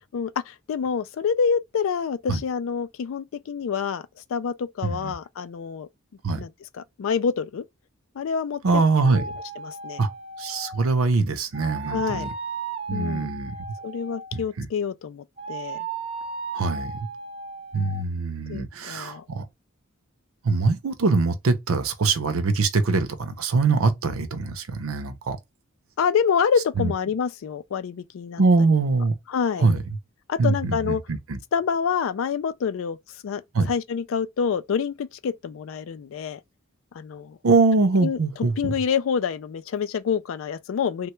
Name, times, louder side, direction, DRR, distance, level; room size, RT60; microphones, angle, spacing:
voice 1, 0.1-4.0 4.3-5.9 6.4-7.6 8.2-9.2 9.6-10.0 11.9-12.3 12.9-13.3 13.8-15.9 18.5-19.2 26.0-28.4 29.3-29.7 30.3-31.0 31.5-33.0 33.2-33.4 33.7-36.4 36.9-37.4 38.0-38.2 38.6-41.1, left 6 dB, 70° left, 0.3 m, -27 dB
voice 2, 4.8-5.1 6.2-6.4 8.6-9.2 10.0-10.1 10.4-12.3 12.9-13.5 14.3-14.7 16.5-16.9 17.7-19.5 20.4-25.4 26.8-26.9 28.4-29.1 29.6-29.8 30.4-31.4 33.5-33.7 37.4-38.7, right 3 dB, 85° right, 0.6 m, -23 dB
sound 1, 9.1-10.9 11.5-14.4 15.4-18.0, right 5 dB, 30° right, 0.6 m, -35 dB
3.3 x 2.2 x 3.0 m
head